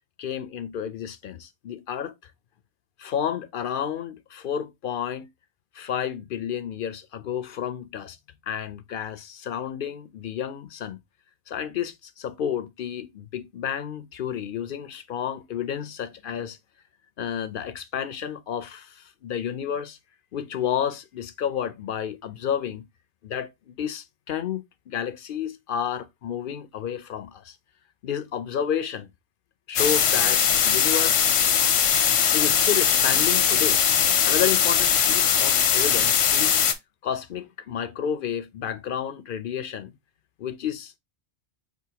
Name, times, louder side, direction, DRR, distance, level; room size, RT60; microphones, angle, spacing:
voice 1, 0.2-2.3 3.0-5.3 5.7-8.2 8.5-11.0 11.5-16.6 17.2-20.0 20.3-22.8 23.2-27.6 28.0-29.1 29.7-31.4 32.3-33.8 34.3-36.6 37.0-39.9 40.4-41.0, left 8 dB, 60° left, 0.6 m, -31 dB
sound 1, 29.8-36.7, left 8 dB, 90° left, 1.0 m, -20 dB
5.2 x 3.6 x 2.8 m
omnidirectional pair, 1.2 m